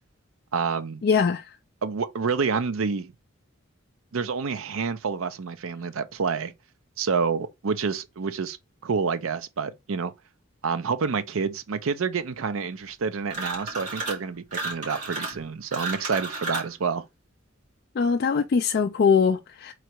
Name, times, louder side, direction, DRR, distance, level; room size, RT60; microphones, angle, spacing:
voice 1, 0.5-1.0 1.8-3.1 4.1-6.5 7.0-8.6 8.8-10.1 10.6-17.0, right 5 dB, 75° right, 0.5 m, -28 dB
voice 2, 1.0-1.4 18.0-19.7, left 5 dB, 45° left, 0.3 m, -22 dB
sound 1, 13.3-14.2 14.5-16.7, right 3 dB, 35° right, 2.3 m, -33 dB
3.7 x 3.2 x 4.5 m
head